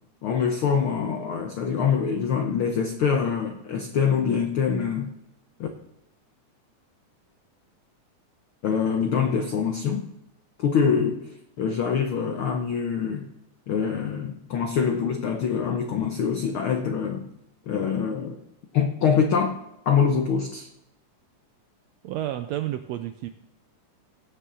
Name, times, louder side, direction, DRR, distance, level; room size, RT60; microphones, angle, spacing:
voice 1, 0.2-5.1 5.6-5.7 8.6-10.0 10.6-13.3 13.7-17.3 17.7-18.4 18.7-19.6 19.9-20.7, left 6 dB, 80° left, 5 dB, 1.1 m, -24 dB
voice 2, 22.0-23.3, right 13 dB, 85° right, 9 dB, 1.5 m, -30 dB
17.5 x 6.8 x 3.8 m, 0.87 s
omnidirectional pair, 3.6 m